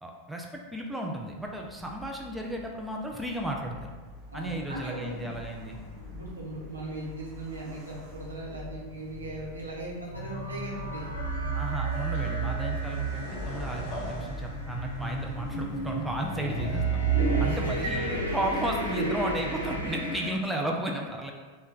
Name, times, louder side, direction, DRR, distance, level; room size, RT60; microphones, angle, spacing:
voice 1, 0.0-3.9 4.3-5.8 11.5-16.9 17.4-21.3, right 1 dB, 5° right, 0 dB, 0.3 m, -33 dB
sound 1, 1.4-19.9, left 3 dB, 25° right, 0.9 m, -44 dB
voice 2, 4.3-5.3 6.1-11.1 17.5-17.9, right 2 dB, 75° right, -4 dB, 0.9 m, -38 dB
sound 2, 10.1-20.3, right 4 dB, 85° left, 0.5 m, -31 dB
sound 3, 11.3-11.5 12.1-15.9, equal, 40° left, 0.9 m, -40 dB
3.1 x 2.2 x 3.7 m, 1.4 s
figure-of-eight pair, 90°, 0 cm